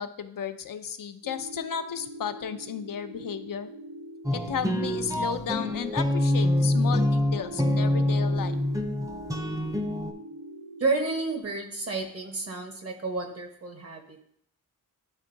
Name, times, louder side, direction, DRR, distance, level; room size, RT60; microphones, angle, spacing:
voice 1, 0.0-3.7 4.3-8.6, left 8 dB, 80° left, 9 dB, 0.5 m, -34 dB
sound 1, 1.2-11.4, right 1 dB, 85° right, 0.8 m, -44 dB
sound 2, 4.2-10.1, left 1 dB, 10° right, 0.6 m, -26 dB
voice 2, 10.8-14.2, right 3 dB, 45° right, 4 dB, 1.0 m, -31 dB
10.5 x 3.6 x 2.6 m, 0.68 s
wide cardioid pair, 110°, 33 cm